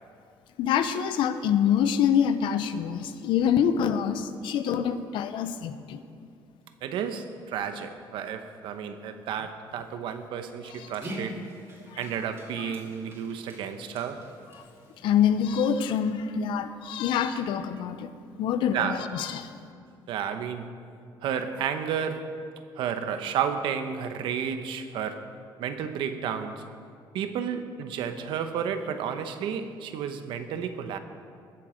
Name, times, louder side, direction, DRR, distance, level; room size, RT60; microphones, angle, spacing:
voice 1, 0.6-6.0 10.8-10.9 11.9-12.0 12.6-12.7 15.0-18.1 18.4-19.5, left 8 dB, 75° left, 0.7 m, -26 dB
voice 2, 6.8-11.5 12.0-14.3 18.7-19.1 20.1-20.7 21.2-22.4 22.8-25.3 25.6-26.7 27.1-31.0, right 7 dB, 75° right, 1.0 m, -32 dB
Dog, 10.6-15.9, right 1 dB, 30° right, 2.6 m, -44 dB
21.0 x 7.6 x 5.1 m
cardioid pair, 150°, 8 cm